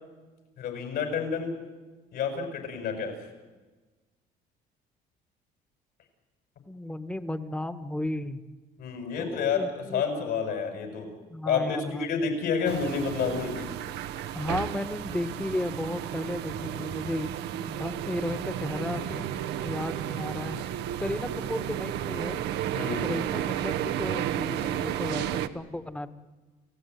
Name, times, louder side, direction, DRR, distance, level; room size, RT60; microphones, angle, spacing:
voice 1, 0.6-1.5 2.1-3.2 8.8-11.2 11.4-13.7 16.5-16.8 19.1-19.2 22.7-23.1, left 6 dB, 70° left, 5 dB, 6.6 m, -29 dB
voice 2, 6.7-8.4 9.2-10.0 11.3-12.1 14.3-19.0 19.6-20.6 21.0-22.4 23.0-26.1, left 1 dB, 5° left, 10 dB, 1.5 m, -34 dB
sound 1, 12.6-25.5, right 11 dB, 85° right, 1.1 m, -33 dB
30.0 x 16.5 x 9.5 m, 1.3 s
cardioid pair, 110°, 17 cm